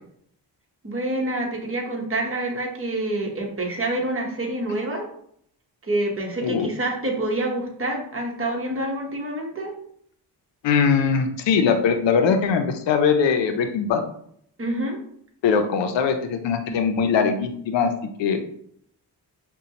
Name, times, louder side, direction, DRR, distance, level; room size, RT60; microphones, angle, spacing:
voice 1, 0.8-5.1 5.8-9.7 14.6-15.0, right 1 dB, 30° right, 1 dB, 1.0 m, -27 dB
voice 2, 10.6-14.0 15.4-17.9 18.2-18.4, left 6 dB, 90° left, 6 dB, 0.5 m, -21 dB
5.1 x 2.2 x 2.8 m, 0.66 s
cardioid pair, 75°, 43 cm